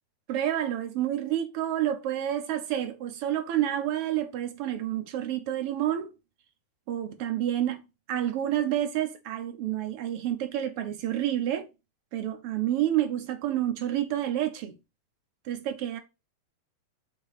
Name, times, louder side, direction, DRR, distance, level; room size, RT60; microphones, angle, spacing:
voice 1, 0.3-6.1 6.9-11.7 12.1-14.7 15.4-16.0, right 11 dB, 65° right, 1.6 m, -29 dB
6.4 x 3.0 x 5.7 m
omnidirectional pair, 3.3 m